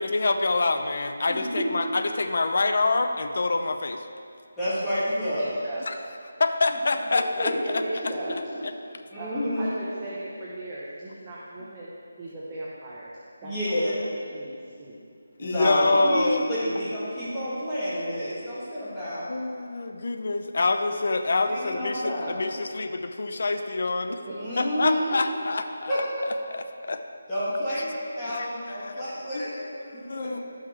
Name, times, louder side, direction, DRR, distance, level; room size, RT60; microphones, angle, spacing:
voice 1, 0.0-4.1 5.9-6.0 6.4-7.8 15.4-16.4 19.3-24.2 24.6-26.0 26.5-27.0 27.7-27.8 28.3-28.9 29.3-30.4, left 3 dB, 55° left, 7 dB, 0.7 m, -26 dB
voice 2, 1.3-1.6 4.6-5.4 7.1-7.5 9.1-9.6 13.4-13.9 15.4-19.2 21.4-22.3 24.4-25.1 25.9-26.0 27.3-29.5 29.9-30.3, equal, 5° left, -13 dB, 2.1 m, -29 dB
voice 3, 5.2-5.8 7.0-8.3 8.8-13.1 13.4-14.5 14.8-15.0 24.2-24.7, right 2 dB, 20° right, -7 dB, 1.0 m, -39 dB
16.0 x 5.9 x 3.3 m, 2.3 s
figure-of-eight pair, 170°, 0 cm